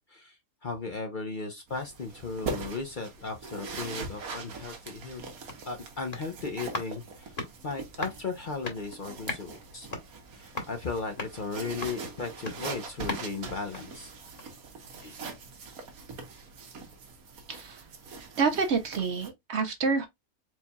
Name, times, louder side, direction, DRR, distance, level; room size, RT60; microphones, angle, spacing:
voice 1, 0.1-5.2 5.6-7.3 7.6-9.9 10.3-14.1 15.0-15.1, left 4 dB, 45° left, 0.7 m, -36 dB
sound 1, 1.7-19.3, right 4 dB, 85° right, 1.6 m, -42 dB
sound 2, 5.4-14.7 15.0-15.1, left 2 dB, 30° left, 1.3 m, -41 dB
voice 2, 17.5-17.8 18.4-20.1, right 5 dB, 60° right, 0.9 m, -28 dB
4.5 x 4.2 x 2.2 m
omnidirectional pair, 1.5 m